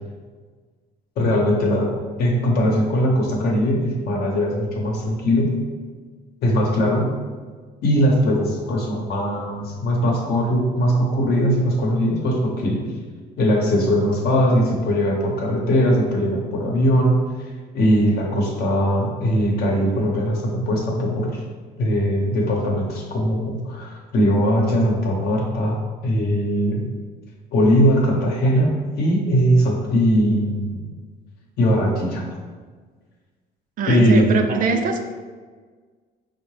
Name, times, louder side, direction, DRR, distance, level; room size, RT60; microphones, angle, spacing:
voice 1, 1.2-5.6 6.4-7.2 7.8-12.8 13.4-17.5 17.7-21.4 21.8-26.9 27.5-30.8 31.6-32.2 33.9-34.3, equal, 70° left, 0 dB, 0.8 m, -20 dB
voice 2, 33.8-35.1, right 4 dB, 55° right, 5 dB, 0.4 m, -22 dB
4.5 x 2.1 x 3.2 m, 1.5 s
cardioid pair, 110°, 17 cm